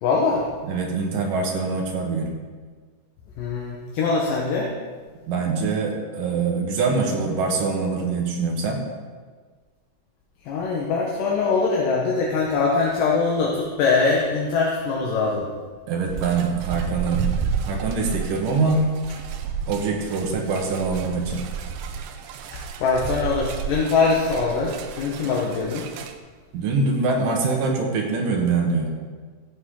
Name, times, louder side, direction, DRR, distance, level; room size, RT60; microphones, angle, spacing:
voice 1, 0.0-0.5 3.4-4.7 10.4-15.5 22.8-25.8, left 4 dB, 75° left, -3 dB, 2.8 m, -22 dB
voice 2, 0.6-2.4 5.3-8.8 15.9-17.3 17.6-18.9 19.7-21.4 25.2-25.3 26.5-28.9, right 4 dB, 75° right, 1 dB, 3.1 m, -24 dB
sound 1, 16.1-26.1, right 7 dB, 90° right, 2.5 m, -31 dB
15.0 x 8.4 x 3.8 m, 1.5 s
omnidirectional pair, 4.0 m